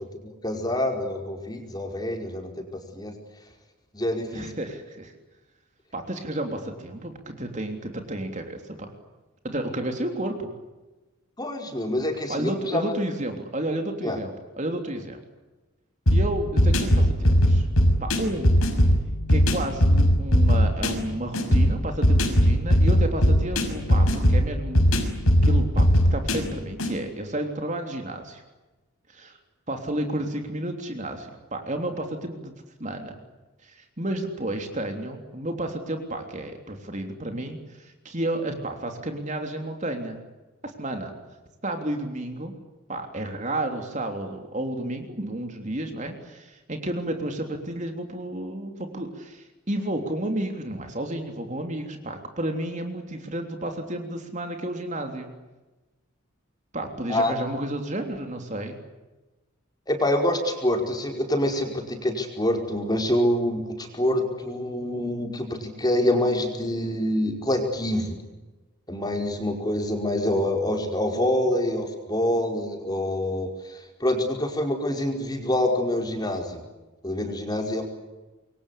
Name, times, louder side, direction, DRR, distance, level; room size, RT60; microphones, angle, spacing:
voice 1, 0.2-2.6 2.9-3.1 3.9-4.4 11.4-12.9 14.0-14.2 57.1-57.3 59.9-68.2 68.9-76.6 77.0-77.8, left 1 dB, 20° left, 3 dB, 5.1 m, -26 dB
voice 2, 4.3-5.1 5.9-8.9 9.4-10.5 12.3-15.2 16.1-17.7 18.0-18.6 19.3-24.8 25.4-28.4 29.1-29.4 29.7-32.5 32.8-33.2 33.6-40.2 40.8-41.1 41.6-42.5 42.9-55.3 56.7-58.8, right 1 dB, 35° right, 4 dB, 3.4 m, -31 dB
sound 1, 16.1-26.9, equal, 80° left, 5.9 m, -20 dB
27.5 x 23.5 x 8.6 m, 1.1 s
head